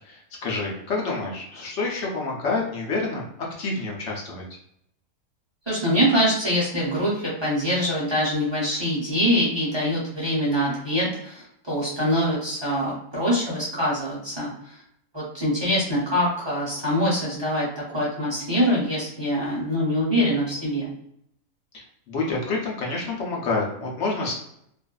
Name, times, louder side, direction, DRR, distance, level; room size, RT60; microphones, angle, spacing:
voice 1, 0.1-3.2 3.6-4.4 22.1-24.4, left 3 dB, 60° left, -2 dB, 0.9 m, -28 dB
voice 2, 5.7-14.5 15.1-17.7 17.9-20.9, equal, 25° right, -7 dB, 0.6 m, -24 dB
2.5 x 2.4 x 2.2 m, 0.73 s
omnidirectional pair, 1.5 m